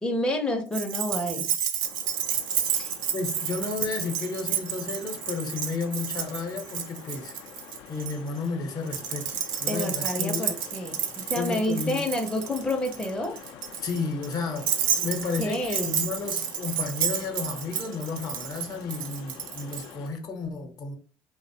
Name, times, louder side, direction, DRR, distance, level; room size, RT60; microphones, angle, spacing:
voice 1, 0.0-1.5 2.7-2.9 9.7-13.4 15.4-16.0, left 1 dB, 10° left, 0.5 m, -29 dB
Keys jangling, 0.7-8.1 8.9-19.9, right 8 dB, 65° right, 0.5 m, -31 dB
sound 1, 1.8-20.1, left 8 dB, 70° left, 0.4 m, -47 dB
voice 2, 3.1-7.3 7.9-10.5 11.4-12.0 13.8-21.0, left 4 dB, 50° left, 0.7 m, -32 dB
2.5 x 2.0 x 2.7 m
supercardioid pair, 75°, 8 cm